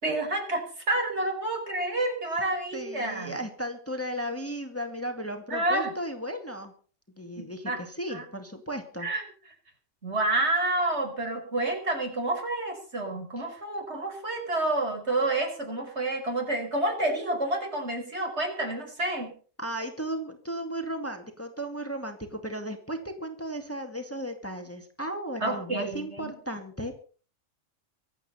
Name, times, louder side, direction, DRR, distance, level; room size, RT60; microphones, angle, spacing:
voice 1, 0.0-3.4 5.5-5.9 7.4-7.8 8.1-8.3 9.0-9.2 10.0-19.3 25.4-26.3, right 2 dB, 55° right, 3 dB, 5.2 m, -29 dB
voice 2, 2.7-6.7 7.2-9.1 19.6-26.9, right 1 dB, 10° left, 5 dB, 2.1 m, -35 dB
24.5 x 8.8 x 5.6 m, 0.42 s
omnidirectional pair, 1.3 m